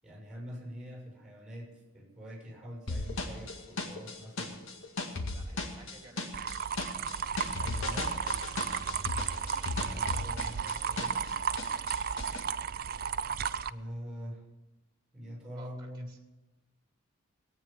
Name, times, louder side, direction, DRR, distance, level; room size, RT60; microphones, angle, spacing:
voice 1, 0.0-4.6 7.6-8.1 9.7-11.3 13.7-14.4 15.1-16.1, equal, 5° right, -1 dB, 6.6 m, -44 dB
sound 1, 2.9-11.3 11.6-12.4, left 2 dB, 75° left, 2.1 m, -36 dB
voice 2, 4.9-6.5 15.6-16.2, right 2 dB, 20° right, 1 dB, 2.9 m, -55 dB
sound 2, 6.3-13.7, right 7 dB, 45° right, 0.4 m, -34 dB
18.5 x 9.3 x 7.1 m, 1.1 s
head